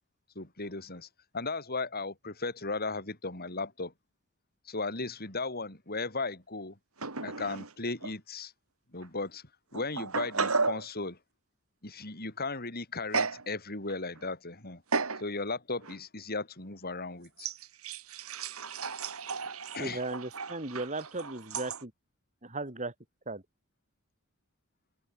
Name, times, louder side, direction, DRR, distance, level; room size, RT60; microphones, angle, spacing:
voice 1, 0.4-1.1 1.3-3.9 4.7-6.8 7.2-8.5 8.9-9.4 9.7-11.2 11.8-14.8 15.2-17.5 19.7-20.0, left 3 dB, 45° left, 7.1 m, -36 dB
sound 1, 7.0-7.7 8.0-8.1 9.0-9.1 9.7-10.9 13.1-13.5 13.9-14.3 14.9-15.3 15.8-16.0 17.4-21.8, right 4 dB, 85° right, 3.6 m, -34 dB
voice 2, 19.8-21.9 22.4-22.9 23.3-23.4, right 2 dB, 35° right, 4.9 m, -36 dB
open air
head